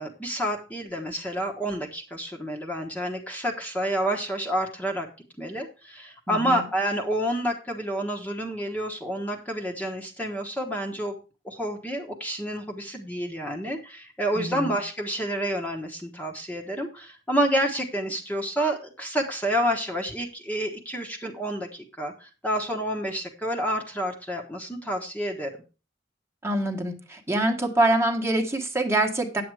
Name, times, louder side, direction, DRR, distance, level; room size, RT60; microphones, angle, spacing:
voice 1, 0.0-5.1 5.4-11.1 11.4-25.5, equal, 10° left, 2 dB, 1.2 m, -29 dB
voice 2, 6.3-6.6 14.3-14.8 26.4-29.4, right 1 dB, 15° right, 3 dB, 1.4 m, -25 dB
9.5 x 7.8 x 4.7 m, 0.32 s
head